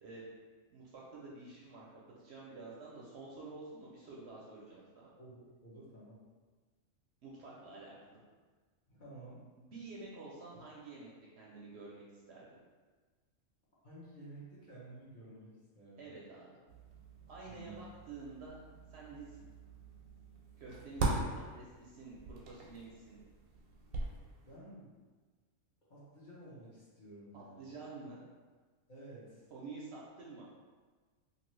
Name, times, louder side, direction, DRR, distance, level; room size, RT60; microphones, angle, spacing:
voice 1, 0.0-0.4 0.7-1.9 2.2-5.1 7.2-8.2 9.6-11.1 11.4-12.5 16.0-16.6 17.3-18.6 18.9-19.5 20.6-23.2 27.3-28.2 29.5-30.5, right 3 dB, 65° right, -5 dB, 0.7 m, -49 dB
voice 2, 5.2-6.2 8.9-9.4 13.8-16.2 17.4-17.8 24.4-24.9 25.9-27.7 28.9-29.5, right 1 dB, 40° left, -9 dB, 0.9 m, -52 dB
sound 1, 16.7-24.6, right 2 dB, 90° right, 1.0 m, -41 dB
2.7 x 2.5 x 3.0 m, 1.4 s
omnidirectional pair, 1.4 m